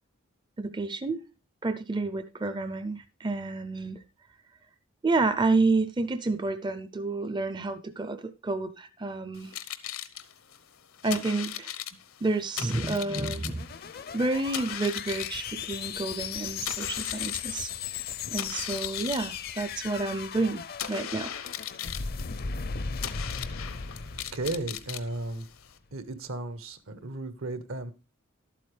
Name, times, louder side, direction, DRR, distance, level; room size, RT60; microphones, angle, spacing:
voice 1, 0.6-1.2 1.6-4.0 5.0-9.5 11.0-11.7 12.2-13.6 14.1-18.0 18.3-21.3, right 3 dB, 20° right, 0.4 m, -29 dB
sound 1, 9.3-25.8, left 10 dB, 80° left, 0.8 m, -39 dB
sound 2, 13.1-25.5, left 6 dB, 45° left, 0.5 m, -37 dB
voice 2, 24.3-25.5 25.9-27.9, right 2 dB, 75° right, 1.0 m, -34 dB
11.5 x 8.5 x 3.3 m
head